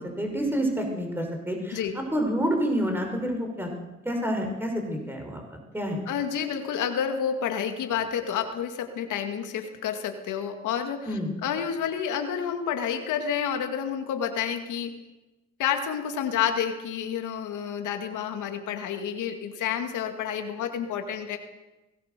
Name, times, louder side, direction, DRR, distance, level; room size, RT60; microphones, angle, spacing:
voice 1, 0.0-3.7 4.0-5.4 5.7-6.0 11.1-11.3, equal, 5° right, 2 dB, 5.7 m, -28 dB
voice 2, 6.1-15.0 15.6-21.4, left 8 dB, 80° left, 5 dB, 2.2 m, -29 dB
23.5 x 18.0 x 6.8 m, 1.1 s
cardioid pair, 90°, 30 cm